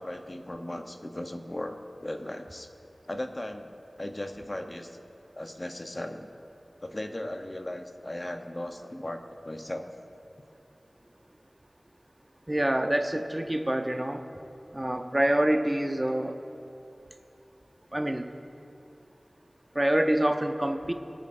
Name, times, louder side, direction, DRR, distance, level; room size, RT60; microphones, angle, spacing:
voice 1, 0.0-2.7 3.1-3.7 4.0-5.0 5.4-6.3 6.8-9.9, left 1 dB, 40° left, 6 dB, 0.8 m, -37 dB
voice 2, 12.5-14.2 14.7-16.4 17.9-18.3 19.7-20.9, right 1 dB, 25° right, 7 dB, 0.7 m, -26 dB
20.5 x 7.2 x 2.6 m, 2.7 s
wide cardioid pair, 45°, 0 cm